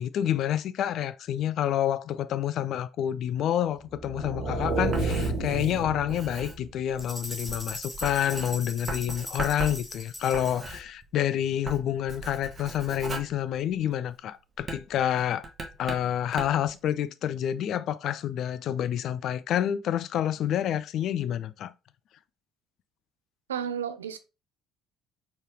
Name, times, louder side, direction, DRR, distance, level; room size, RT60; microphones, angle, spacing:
voice 1, 0.0-15.5 15.8-21.7, left 10 dB, 50° left, 0.3 m, -28 dB
sound 1, 3.9-6.8, right 3 dB, 50° right, 1.4 m, -31 dB
Writing, 4.6-11.3 11.6-14.1 14.6-16.7, right 2 dB, 30° right, 1.1 m, -39 dB
sound 2, 7.0-10.7, left 1 dB, 10° left, 1.1 m, -40 dB
voice 2, 23.5-24.2, right 8 dB, 75° right, 0.4 m, -32 dB
4.4 x 3.3 x 3.1 m
figure-of-eight pair, 50°, 0 cm